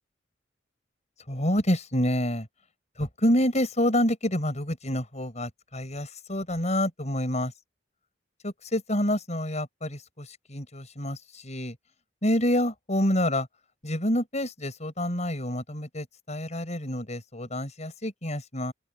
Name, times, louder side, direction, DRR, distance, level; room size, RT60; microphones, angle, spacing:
voice 1, 1.3-2.5 3.0-7.5 8.4-11.7 12.2-13.5 13.8-18.7, left 1 dB, 40° left, 5.9 m, -28 dB
open air
head